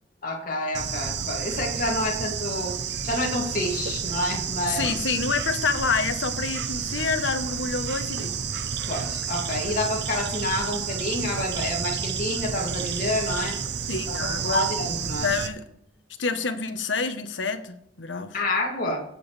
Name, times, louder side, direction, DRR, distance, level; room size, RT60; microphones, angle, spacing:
voice 1, 0.2-2.7 3.0-4.9 8.9-13.6 14.1-15.3 18.3-19.0, left 1 dB, 50° left, -1 dB, 2.3 m, -28 dB
Bird / Insect, 0.7-15.5, right 7 dB, 65° right, 0.8 m, -30 dB
voice 2, 4.6-8.3 13.9-14.7 15.2-15.6 16.2-18.3, left 4 dB, 80° left, 9 dB, 1.0 m, -28 dB
17.0 x 7.0 x 3.3 m, 0.75 s
head